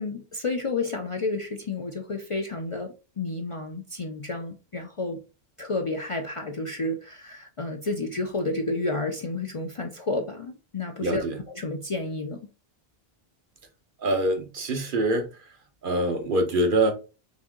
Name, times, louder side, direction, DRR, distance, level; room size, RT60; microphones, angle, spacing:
voice 1, 0.0-5.2 5.6-12.4, left 2 dB, 40° left, 0.6 m, -31 dB
voice 2, 11.0-11.4 14.0-15.3 15.8-16.9, right 1 dB, 55° right, 1.2 m, -24 dB
4.1 x 3.5 x 3.7 m
omnidirectional pair, 1.0 m